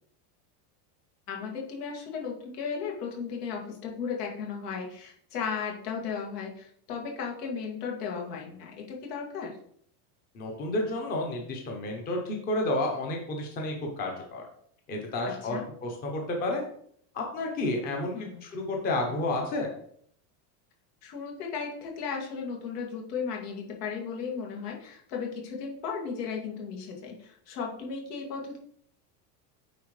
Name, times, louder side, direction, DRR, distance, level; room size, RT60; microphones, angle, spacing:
voice 1, 1.3-9.5 15.5-15.6 18.1-18.4 21.0-28.6, left 6 dB, 80° left, -1 dB, 2.4 m, -35 dB
voice 2, 10.3-14.4 14.9-16.6 17.1-19.7, left 2 dB, 20° left, 1 dB, 0.8 m, -31 dB
9.1 x 4.2 x 3.2 m, 0.64 s
supercardioid pair, 175°, 47 cm